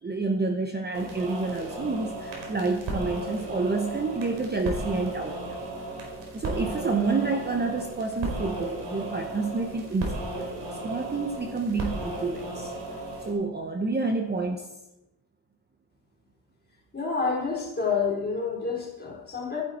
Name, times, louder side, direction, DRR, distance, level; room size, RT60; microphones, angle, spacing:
voice 1, 0.0-5.4 6.3-10.5 10.8-12.7 13.2-14.7, right 3 dB, 20° right, 4 dB, 1.1 m, -29 dB
sound 1, 0.9-13.3, right 2 dB, 85° right, 4.5 m, -35 dB
voice 2, 16.9-19.6, left 5 dB, 20° left, -3 dB, 4.4 m, -28 dB
13.5 x 11.0 x 4.4 m, 0.95 s
cardioid pair, 110°, 44 cm